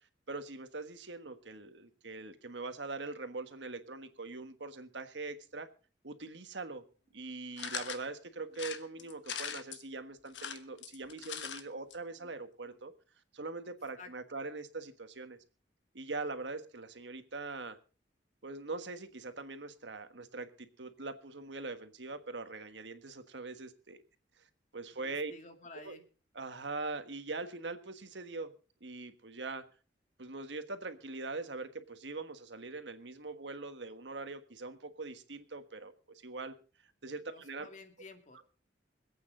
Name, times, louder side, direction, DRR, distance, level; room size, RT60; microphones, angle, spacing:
voice 1, 0.3-5.7 6.0-6.8 7.1-12.9 13.3-15.4 15.9-17.8 18.4-24.0 24.7-25.3 25.8-26.0 26.3-28.5 28.8-29.6 30.2-36.5 37.0-37.7 38.3-38.4, right 3 dB, 75° right, 9 dB, 1.4 m, -42 dB
sound 1, 7.6-8.0 8.5-9.8 10.3-11.6 11.9-12.0 12.2-12.3, left 7 dB, 80° left, 1.3 m, -40 dB
voice 2, 24.9-26.0 37.3-38.4, left 3 dB, 45° left, 5 dB, 2.3 m, -52 dB
25.5 x 8.7 x 3.8 m, 0.36 s
head